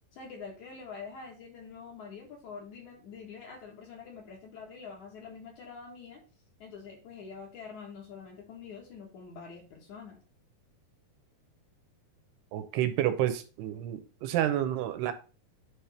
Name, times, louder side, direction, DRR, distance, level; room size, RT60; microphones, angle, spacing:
voice 1, 0.1-6.2 6.6-10.2, left 5 dB, 60° left, 2.4 m, -45 dB
voice 2, 12.5-15.1, right 12 dB, 90° right, 2.8 m, -29 dB
9.4 x 3.5 x 4.2 m
omnidirectional pair, 4.6 m